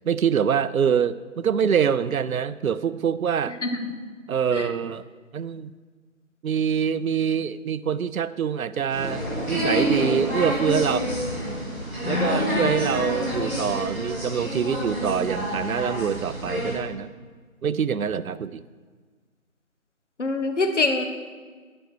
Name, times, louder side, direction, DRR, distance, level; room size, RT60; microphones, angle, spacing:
voice 1, 0.0-3.6 4.3-5.0 5.3-5.7 6.4-11.1 12.0-17.1 17.6-18.6, right 7 dB, 80° right, 16 dB, 0.5 m, -25 dB
sound 1, 8.9-16.7, equal, 15° right, 2.7 m, -28 dB
voice 2, 12.0-12.7 20.2-21.0, left 3 dB, 55° left, 5 dB, 1.1 m, -25 dB
10.0 x 5.3 x 6.2 m, 1.5 s
figure-of-eight pair, 160°, 42 cm